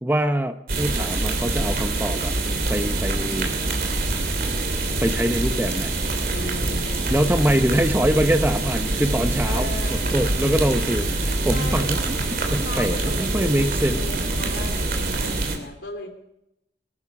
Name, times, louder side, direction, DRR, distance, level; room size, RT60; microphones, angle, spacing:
voice 1, 0.0-2.3 2.7-3.5 5.0-6.0 7.1-12.2 12.5-14.1, right 1 dB, 10° right, 8 dB, 0.7 m, -24 dB
sound 1, 0.7-15.6, right 2 dB, 50° right, 3.0 m, -25 dB
voice 2, 6.3-7.1 9.4-10.2 11.5-12.0 12.5-16.1, left 1 dB, 80° left, 5 dB, 3.2 m, -36 dB
21.5 x 13.0 x 4.9 m, 0.82 s
head